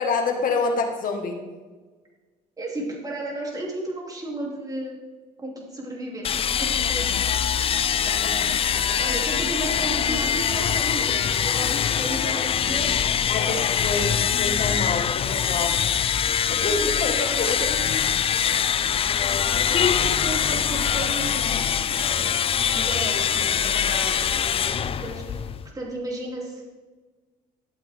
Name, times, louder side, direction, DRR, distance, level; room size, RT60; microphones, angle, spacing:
voice 1, 0.0-1.4 8.0-8.8 13.3-15.8 16.5-18.0, left 4 dB, 55° left, 4 dB, 1.8 m, -28 dB
voice 2, 2.6-5.0 5.4-7.2 8.3-8.7 9.0-12.9 14.7-15.0 16.2-17.7 19.6-26.6, right 1 dB, 20° right, -2 dB, 3.0 m, -34 dB
sound 1, 6.2-25.7, left 8 dB, 35° left, 0.4 m, -23 dB
12.0 x 8.0 x 3.7 m, 1.3 s
cardioid pair, 110°, 17 cm